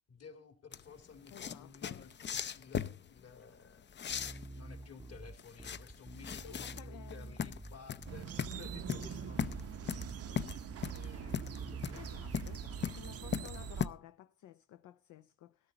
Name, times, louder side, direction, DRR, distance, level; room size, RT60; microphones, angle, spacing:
voice 1, 0.1-3.9 4.3-10.3 10.8-13.4, left 6 dB, 55° left, 2.4 m, -55 dB
sound 1, 0.7-13.9, left 8 dB, 35° left, 0.6 m, -39 dB
voice 2, 1.3-2.0 6.4-7.4 9.7-10.4 11.9-15.7, left 12 dB, 75° left, 0.6 m, -54 dB
Bass guitar, 4.1-13.7, right 2 dB, 10° right, 0.7 m, -49 dB
sound 2, 8.1-13.9, right 8 dB, 55° right, 0.7 m, -44 dB
13.5 x 12.5 x 3.9 m
cardioid pair, 90°, 30 cm